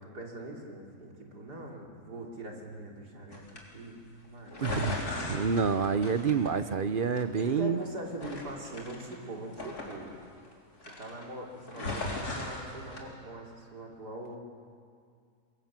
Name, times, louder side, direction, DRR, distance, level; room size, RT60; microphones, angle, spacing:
voice 1, 0.0-3.4 3.7-4.7 7.4-10.1 11.0-14.4, right 1 dB, 80° right, -1 dB, 3.9 m, -42 dB
sound 1, 3.3-3.6 4.5-6.9 7.2-7.8 8.2-10.5 10.8-11.3 11.6-13.0, left 2 dB, 70° left, 4.3 m, -37 dB
voice 2, 4.6-7.8, right 6 dB, 45° right, 11 dB, 0.7 m, -28 dB
27.5 x 23.0 x 7.6 m, 2.2 s
omnidirectional pair, 1.7 m